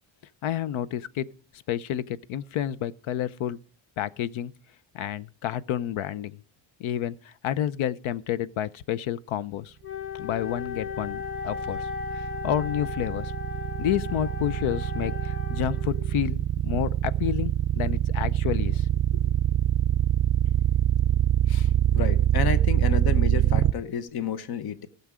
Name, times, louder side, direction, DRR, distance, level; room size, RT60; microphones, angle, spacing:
voice 1, 0.4-1.3 1.7-3.6 4.0-4.5 4.9-6.4 6.8-9.7 10.2-11.9 12.1-13.3 13.8-18.9, left 11 dB, 70° left, 0.7 m, -30 dB
Wind instrument woodwind instrument, 9.8-16.2, left 7 dB, 25° left, 4.9 m, -36 dB
sound 1, 10.4-23.7, right 11 dB, 35° right, 0.4 m, -24 dB
voice 2, 21.5-24.9, left 7 dB, 50° left, 1.0 m, -31 dB
16.0 x 7.0 x 4.9 m
cardioid pair, 160°, 50 cm